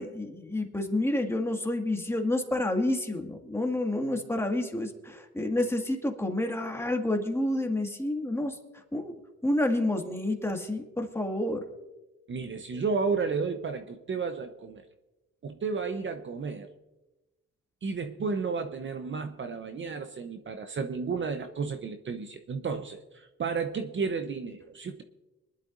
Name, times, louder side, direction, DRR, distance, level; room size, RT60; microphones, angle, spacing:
voice 1, 0.0-11.6, left 1 dB, 10° left, 3 dB, 1.9 m, -29 dB
voice 2, 12.3-14.9 15.4-16.7 17.8-25.0, right 5 dB, 40° right, 8 dB, 0.8 m, -32 dB
23.0 x 11.5 x 2.6 m, 1.1 s
cardioid pair, 90°, 30 cm